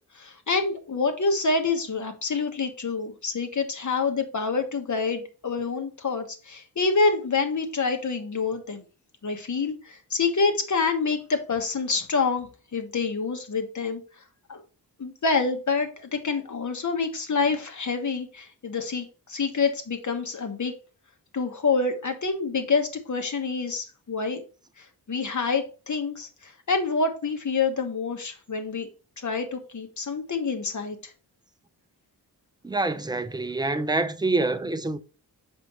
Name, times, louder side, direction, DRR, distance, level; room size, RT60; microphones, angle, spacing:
voice 1, 0.1-8.8 9.2-14.0 14.5-14.6 15.0-20.7 21.3-24.4 24.8-28.9 29.2-31.1, left 4 dB, 45° left, 1.3 m, -27 dB
voice 2, 32.6-35.0, right 2 dB, 10° right, 0.6 m, -26 dB
6.4 x 5.0 x 3.0 m
wide cardioid pair, 95°, 39 cm